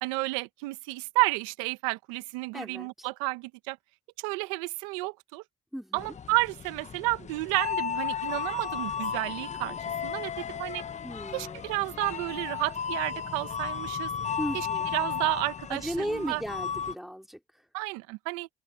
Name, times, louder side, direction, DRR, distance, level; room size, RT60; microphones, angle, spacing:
voice 1, 0.0-3.8 4.2-5.4 5.9-9.8 10.0-10.8 11.3-14.1 14.5-14.7 14.9-16.4 17.7-18.5, right 22 dB, 85° right, 1.4 m, -31 dB
voice 2, 2.5-3.1 5.7-6.1 11.0-11.6 14.4-14.9 15.7-17.6, equal, ahead, 3.1 m, -36 dB
sound 1, 6.0-16.9, left 7 dB, 45° left, 1.3 m, -34 dB
open air
hypercardioid pair, 55°, 17 cm